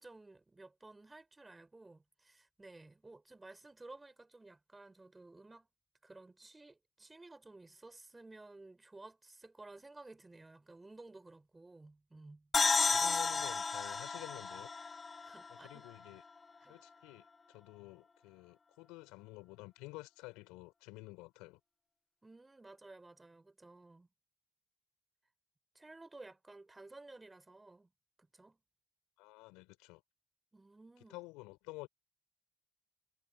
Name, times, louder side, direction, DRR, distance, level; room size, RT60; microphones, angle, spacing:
voice 1, 0.0-5.7 6.0-12.5 15.2-15.8 16.6-16.8 22.2-24.1 25.7-27.9 28.2-28.6 30.5-31.2, right 2 dB, 25° right, 4.8 m, -55 dB
sound 1, 12.5-16.1, left 4 dB, 40° left, 0.8 m, -33 dB
voice 2, 12.8-14.7 15.5-16.2 16.7-21.6 29.2-30.0 31.1-31.9, left 23 dB, 85° left, 5.0 m, -51 dB
hypercardioid pair, 50°, 0 cm